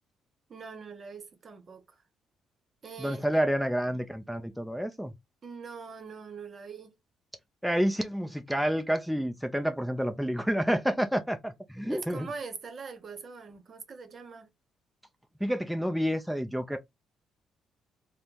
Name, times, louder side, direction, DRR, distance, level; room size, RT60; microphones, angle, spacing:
voice 1, 0.5-2.0 2.8-3.4 5.4-7.0 11.9-14.5, right 5 dB, 45° right, 0.7 m, -42 dB
voice 2, 3.0-5.1 7.6-12.3 15.4-16.8, equal, ahead, 0.5 m, -29 dB
3.5 x 2.1 x 2.8 m
cardioid pair, 90°, 0 cm